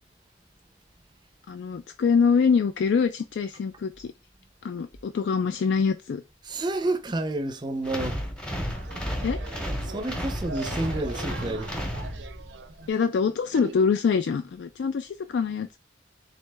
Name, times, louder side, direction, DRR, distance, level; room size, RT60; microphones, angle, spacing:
voice 1, 1.5-4.1 4.6-6.2 9.2-9.4 12.9-15.8, left 5 dB, 75° left, 0.3 m, -24 dB
voice 2, 6.4-8.2 9.8-11.8, right 2 dB, 25° right, 0.5 m, -30 dB
sound 1, 7.8-12.6, equal, 5° left, 0.9 m, -32 dB
sound 2, 8.7-13.7, right 4 dB, 75° right, 0.5 m, -42 dB
3.9 x 3.2 x 3.3 m
head